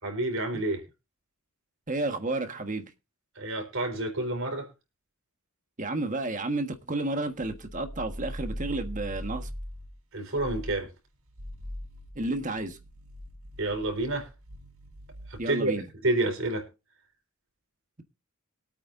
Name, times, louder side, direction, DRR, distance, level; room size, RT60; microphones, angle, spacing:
voice 1, 0.0-0.8 3.4-4.7 10.1-10.9 13.6-14.3 15.3-15.7 16.0-16.6, right 2 dB, 65° right, 4.6 m, -29 dB
voice 2, 1.9-2.9 5.8-9.5 12.1-12.8 15.4-15.8, right 2 dB, 35° right, 1.4 m, -31 dB
sound 1, 7.4-10.0 10.3-10.8 11.3-15.5, equal, 85° right, 4.1 m, -41 dB
24.0 x 8.7 x 2.6 m
head